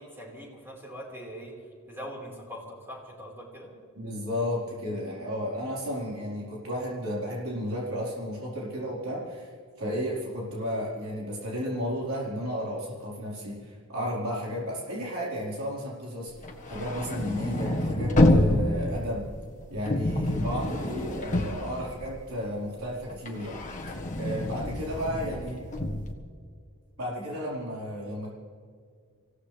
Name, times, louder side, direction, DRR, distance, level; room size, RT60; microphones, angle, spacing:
voice 1, 0.0-1.6 1.9-3.7, equal, 10° right, -3 dB, 4.5 m, -42 dB
voice 2, 3.9-9.5 9.8-19.3 19.7-23.7 24.2-25.6 27.0-28.3, equal, 75° right, -5 dB, 4.4 m, -33 dB
sound 1, 16.4-22.5 22.8-26.1, left 1 dB, 35° left, 1.6 m, -27 dB
26.0 x 16.5 x 3.4 m, 2.1 s
head